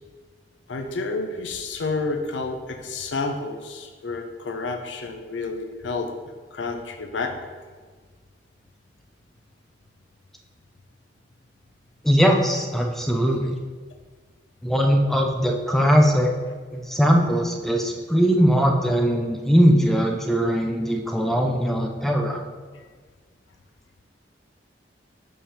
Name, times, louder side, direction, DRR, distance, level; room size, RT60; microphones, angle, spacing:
voice 1, 0.7-6.1 6.5-7.4 22.7-22.8, left 3 dB, 90° left, 5 dB, 0.6 m, -30 dB
voice 2, 12.0-13.6 14.6-16.3 16.7-22.4, equal, ahead, 2 dB, 0.4 m, -20 dB
5.5 x 3.4 x 5.6 m, 1.5 s
head